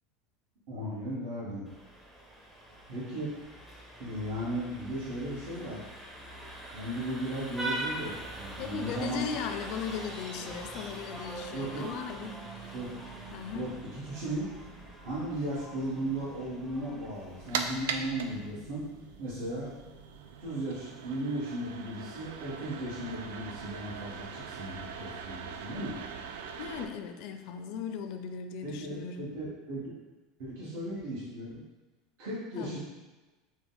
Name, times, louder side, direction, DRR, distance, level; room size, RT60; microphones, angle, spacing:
voice 1, 0.7-1.7 2.9-3.3 4.0-5.8 6.7-9.3 11.5-11.9 12.7-12.9 13.5-14.5 15.0-18.8 19.2-19.7 20.4-26.0 28.6-29.9 30.4-31.6 32.2-32.8, right 1 dB, 60° right, -10 dB, 1.3 m, -36 dB
Vehicle horn car horn honking, 1.7-18.5, right 1 dB, 5° right, 0.6 m, -43 dB
voice 2, 8.6-12.8 13.3-13.7 26.6-29.4 32.5-32.8, left 7 dB, 55° left, 7 dB, 0.4 m, -38 dB
sound 1, 10.3-20.5, right 3 dB, 35° right, 0.8 m, -51 dB
sound 2, 17.1-26.8, right 6 dB, 85° right, 0.3 m, -41 dB
4.9 x 2.1 x 3.9 m, 1.2 s
supercardioid pair, 150°, 0 cm